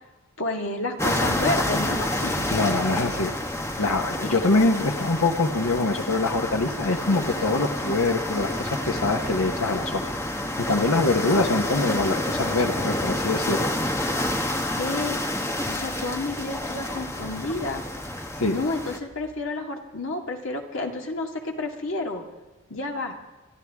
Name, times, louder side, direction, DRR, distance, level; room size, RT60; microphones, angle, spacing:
voice 1, 0.4-2.5 14.8-15.2 15.7-17.8 18.5-22.2 22.7-23.1, left 2 dB, 60° left, 2 dB, 2.0 m, -30 dB
sound 1, 1.0-19.0, left 1 dB, 10° left, 1.0 m, -28 dB
voice 2, 2.5-3.3 3.8-10.0 10.6-13.6 18.4-18.5, left 3 dB, 75° left, 4 dB, 1.2 m, -24 dB
25.5 x 12.0 x 3.6 m, 1.1 s
head